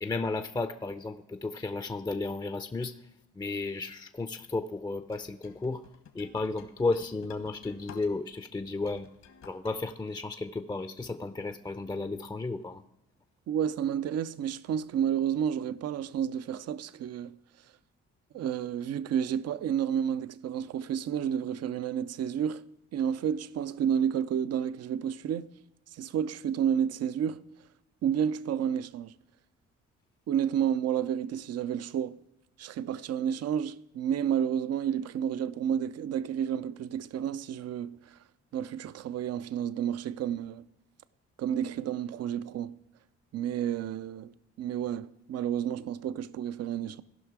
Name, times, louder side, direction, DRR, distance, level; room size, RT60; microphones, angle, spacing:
voice 1, 0.0-2.9 3.3-5.8 6.1-9.1 9.4-12.8, left 3 dB, 15° left, 0.6 m, -33 dB
sound 1, 5.1-8.4 8.8-9.7, left 7 dB, 65° left, 1.5 m, -52 dB
voice 2, 13.5-17.4 18.3-25.5 25.9-27.5 28.0-29.1 30.3-32.2 32.6-38.2 38.5-40.6 41.4-42.8 43.3-47.0, right 9 dB, 55° right, 0.6 m, -31 dB
15.5 x 5.7 x 4.7 m
supercardioid pair, 60°, 29 cm